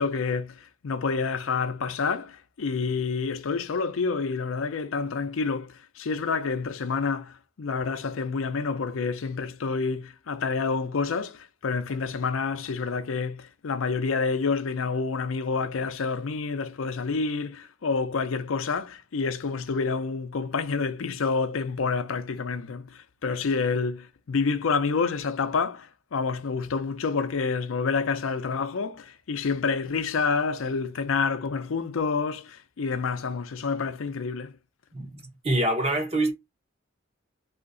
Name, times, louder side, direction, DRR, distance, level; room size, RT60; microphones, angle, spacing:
voice 1, 0.0-34.5, left 4 dB, 85° left, 0.5 m, -28 dB
voice 2, 34.9-36.3, right 1 dB, 30° right, 0.9 m, -26 dB
2.8 x 2.5 x 3.8 m
head